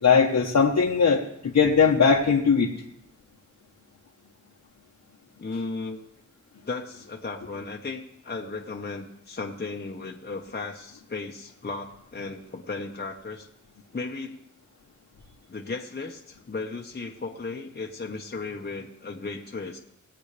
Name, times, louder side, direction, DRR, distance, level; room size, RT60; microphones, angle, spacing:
voice 1, 0.0-2.7, left 5 dB, 65° left, -3 dB, 1.3 m, -20 dB
voice 2, 5.4-6.0 6.7-13.5 13.9-14.4 15.5-19.8, left 3 dB, 35° left, 0 dB, 1.2 m, -35 dB
20.5 x 8.1 x 3.4 m, 0.73 s
wide cardioid pair, 85°, 30 cm